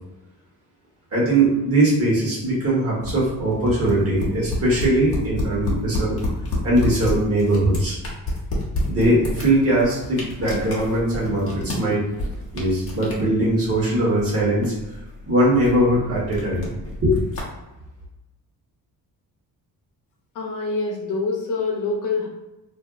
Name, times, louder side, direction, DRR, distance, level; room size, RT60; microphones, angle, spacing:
voice 1, 1.1-6.2 6.6-8.0 8.9-12.0 12.5-14.7 15.2-16.7 17.0-17.2, right 1 dB, 40° right, -5 dB, 1.3 m, -20 dB
sound 1, 3.0-17.4, left 1 dB, 40° left, 0.9 m, -30 dB
voice 2, 20.3-22.3, left 3 dB, 60° left, -1 dB, 0.8 m, -25 dB
2.6 x 2.1 x 3.6 m, 1.0 s
cardioid pair, 135°, 37 cm